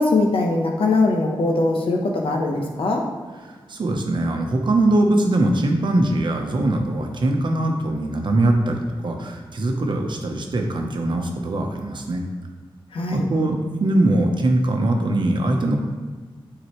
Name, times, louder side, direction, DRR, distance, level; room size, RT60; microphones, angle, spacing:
voice 1, 0.0-3.0 12.9-13.2, left 2 dB, 75° left, 1 dB, 0.9 m, -21 dB
voice 2, 3.4-12.2 13.1-15.8, right 1 dB, 55° right, 3 dB, 0.9 m, -21 dB
9.4 x 3.9 x 3.1 m, 1.4 s
wide cardioid pair, 140°, 9 cm